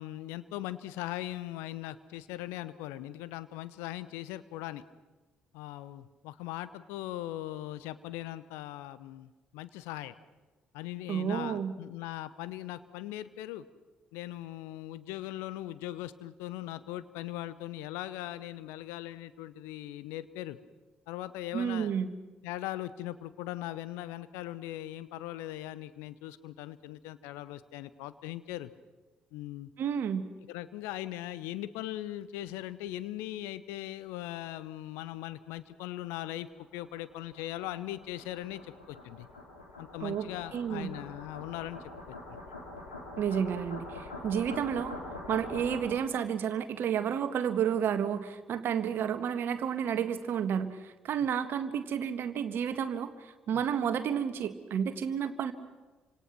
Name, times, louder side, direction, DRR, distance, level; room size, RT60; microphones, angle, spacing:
voice 1, 0.0-4.8 5.5-10.1 10.7-13.6 14.1-20.6 21.1-21.9 22.4-28.7 29.3-29.7 30.5-39.3 39.8-41.8 42.1-42.2 53.5-53.6, left 14 dB, 70° left, 15 dB, 0.9 m, -40 dB
voice 2, 11.1-11.7 21.5-22.1 29.8-30.2 40.0-40.9 43.2-44.9 45.3-55.5, right 8 dB, 55° right, 10 dB, 1.6 m, -31 dB
sound 1, 36.2-46.2, left 2 dB, 90° left, 3.4 m, -45 dB
28.5 x 26.0 x 6.1 m, 1.3 s
figure-of-eight pair, 45°, 4 cm